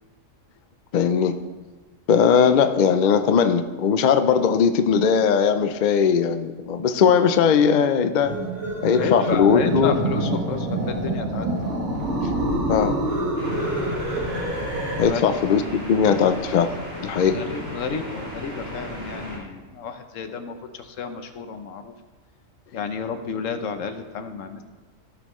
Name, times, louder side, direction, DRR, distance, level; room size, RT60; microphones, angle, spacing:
voice 1, 0.9-1.3 2.1-8.4 8.8-10.1 12.7-13.0 15.0-16.7 17.0-17.4, left 7 dB, 60° left, 9 dB, 0.5 m, -19 dB
sound 1, 8.2-15.1, right 1 dB, 65° right, 2.2 m, -26 dB
voice 2, 9.0-11.5 15.0-15.2 17.3-21.9 22.7-24.6, left 6 dB, 80° left, 8 dB, 1.1 m, -31 dB
sound 2, 13.4-19.4, equal, 85° right, 3.2 m, -36 dB
15.5 x 6.4 x 3.1 m, 1.3 s
omnidirectional pair, 1.3 m